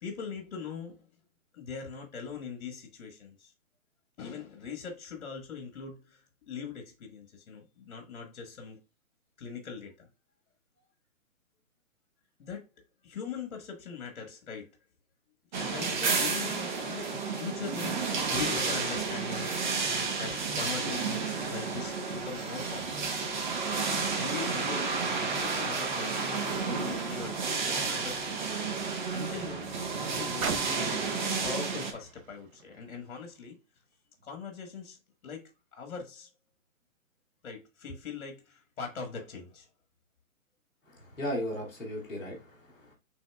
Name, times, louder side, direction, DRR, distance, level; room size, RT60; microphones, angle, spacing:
voice 1, 0.0-1.1 1.5-3.5 4.2-6.2 6.5-8.8 9.4-10.1 12.4-12.7 13.0-14.7 15.5-19.7 20.2-23.0 24.2-28.3 29.1-31.0 31.4-33.6 34.2-35.0 35.2-36.3 37.4-39.7, left 5 dB, 55° left, 1.4 m, -41 dB
sound 1, 15.5-31.9, right 4 dB, 35° right, 0.8 m, -31 dB
Car, 27.1-33.4 34.2-34.3, right 5 dB, 80° right, 1.0 m, -43 dB
voice 2, 41.1-42.9, equal, ahead, 0.5 m, -36 dB
6.9 x 3.3 x 2.3 m
hypercardioid pair, 160°, 42 cm